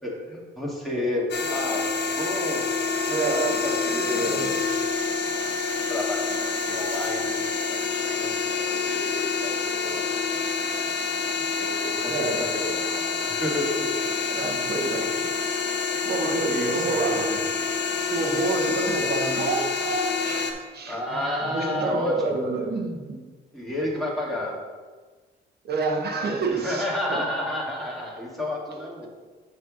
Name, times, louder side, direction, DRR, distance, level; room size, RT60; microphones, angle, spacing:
voice 1, 0.0-2.7 3.3-4.6 5.9-10.1 10.6-10.9 11.6-14.1 16.3-17.4 20.9-22.4 23.5-24.6 26.5-29.1, left 1 dB, ahead, -4 dB, 2.2 m, -31 dB
sound 1, 1.3-20.5, left 5 dB, 60° left, 1.0 m, -27 dB
voice 2, 3.1-3.6 3.9-4.6 10.9-11.3 12.1-12.5 14.3-15.2 16.0-17.4 18.0-23.2 25.6-27.3, right 3 dB, 55° right, 2 dB, 1.4 m, -29 dB
7.3 x 3.4 x 6.3 m, 1.4 s
cardioid pair, 90°, 20 cm